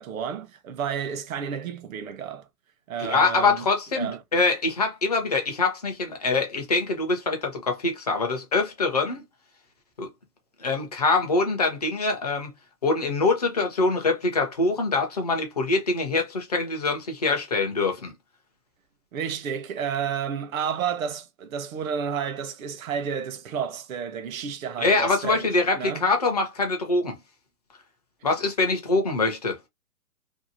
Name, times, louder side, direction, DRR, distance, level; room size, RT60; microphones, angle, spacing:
voice 1, 0.0-2.4 2.9-3.7 3.9-4.2 19.1-26.1, right 7 dB, 60° right, 0.8 m, -31 dB
voice 2, 3.0-9.2 10.0-10.1 10.6-12.5 12.8-18.1 24.8-27.2 28.2-29.6, left 3 dB, 30° left, 0.4 m, -24 dB
2.7 x 2.4 x 2.6 m
hypercardioid pair, 150°, 47 cm